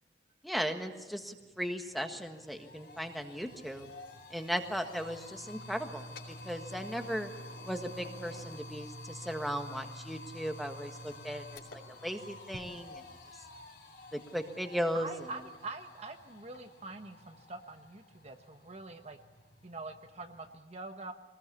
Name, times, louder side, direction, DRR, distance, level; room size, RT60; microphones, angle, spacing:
voice 1, 0.4-3.9 4.3-7.3 7.6-11.6 12.0-13.0 14.1-15.1, equal, ahead, 5 dB, 1.6 m, -37 dB
sound 1, 1.5-20.6, left 1 dB, 65° left, 4.3 m, -49 dB
voice 2, 14.9-19.2 19.6-21.1, right 3 dB, 35° right, 6 dB, 1.1 m, -44 dB
23.5 x 20.0 x 8.5 m, 1.2 s
head